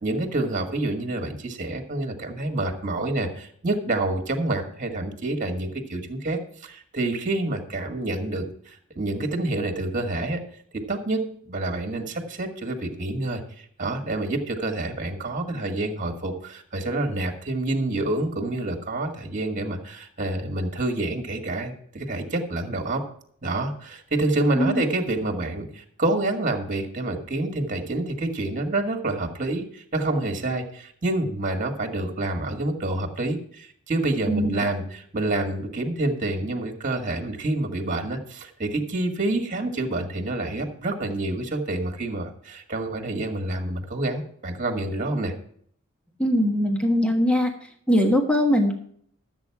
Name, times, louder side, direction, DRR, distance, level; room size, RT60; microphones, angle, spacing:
voice 1, 0.0-10.4 10.7-23.0 23.4-45.3, right 2 dB, 35° right, 4 dB, 1.9 m, -28 dB
voice 2, 46.2-47.5 47.9-48.7, equal, 5° left, 2 dB, 1.3 m, -21 dB
13.0 x 8.1 x 4.8 m, 0.62 s
head